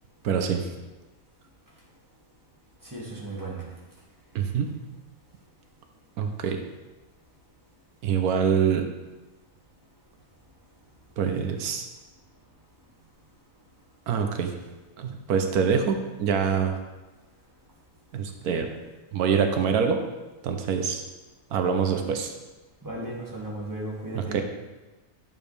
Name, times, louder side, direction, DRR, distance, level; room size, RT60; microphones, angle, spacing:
voice 1, 0.2-0.7 4.3-4.7 6.2-6.6 8.0-8.9 11.2-11.9 14.1-14.5 15.0-16.7 18.1-18.7 19.1-20.0 20.4-21.0 21.5-22.3 24.1-24.4, right 6 dB, 85° right, 5 dB, 1.2 m, -25 dB
voice 2, 2.8-3.6 22.8-24.4, right 1 dB, 15° right, -4 dB, 1.9 m, -35 dB
10.5 x 7.0 x 3.4 m, 1.1 s
omnidirectional pair, 1.6 m